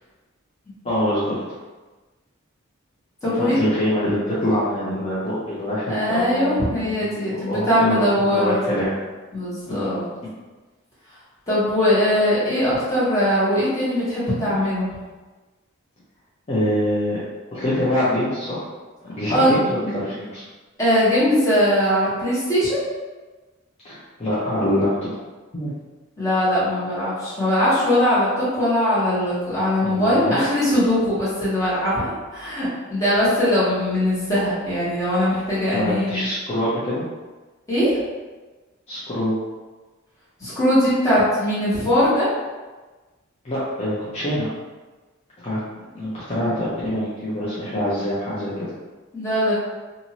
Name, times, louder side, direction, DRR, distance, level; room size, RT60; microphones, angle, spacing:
voice 1, 0.8-1.4 3.2-8.9 9.6-9.9 16.5-17.2 17.5-18.7 19.0-20.4 23.8-25.1 25.5-25.7 29.8-30.4 35.7-37.1 38.9-39.4 43.4-44.5 45.4-45.6 45.9-48.6, left 1 dB, 30° left, -11 dB, 0.6 m, -25 dB
voice 2, 3.2-3.5 5.9-8.6 9.3-10.0 11.5-14.9 19.3-19.5 19.8-19.9 20.8-22.8 26.2-36.3 37.7-38.0 40.4-42.3 49.1-49.5, equal, 15° left, -11 dB, 1.3 m, -20 dB
2.7 x 2.6 x 2.9 m, 1.3 s
head